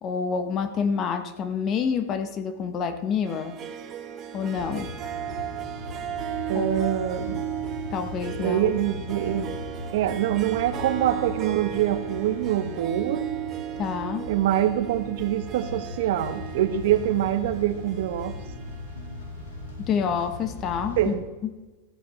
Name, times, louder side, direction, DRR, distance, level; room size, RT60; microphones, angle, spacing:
voice 1, 0.0-3.6 4.3-4.9 6.5-6.7 7.9-8.6 13.8-14.3 19.9-21.1, left 6 dB, 35° left, 9 dB, 1.3 m, -27 dB
Harp, 3.2-20.0, right 11 dB, 35° right, 1.4 m, -36 dB
sound 1, 4.5-21.2, left 2 dB, 90° left, 3.0 m, -39 dB
voice 2, 6.5-7.4 8.4-9.5 9.9-13.2 14.3-18.3 21.0-21.2, right 11 dB, 75° right, 10 dB, 1.1 m, -25 dB
13.5 x 8.8 x 4.2 m, 1.2 s
supercardioid pair, 125°, 0 cm